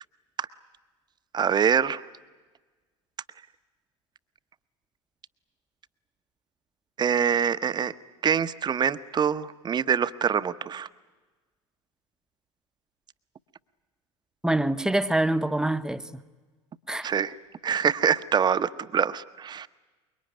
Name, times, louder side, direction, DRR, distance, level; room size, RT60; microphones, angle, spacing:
voice 1, 1.3-2.0 7.0-7.9 8.2-10.9 17.0-17.4 17.6-19.7, right 7 dB, 30° right, 0.9 m, -25 dB
voice 2, 14.4-16.0 16.9-17.1, right 1 dB, 5° right, 1.0 m, -25 dB
24.5 x 22.5 x 9.4 m
figure-of-eight pair, 70°, 15 cm